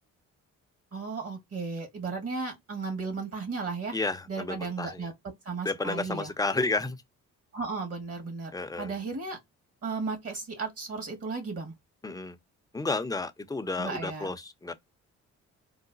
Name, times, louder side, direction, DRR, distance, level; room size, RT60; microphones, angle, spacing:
voice 1, 0.9-3.9 4.3-5.1 5.4-6.3 7.5-8.5 8.8-9.4 9.8-11.7 13.8-14.3, right 4 dB, 50° right, 1.5 m, -35 dB
voice 2, 3.9-5.1 5.6-7.0 8.5-9.0 12.0-12.4 12.7-14.7, left 3 dB, 10° left, 0.5 m, -31 dB
3.9 x 2.1 x 2.5 m
cardioid pair, 90°, 30 cm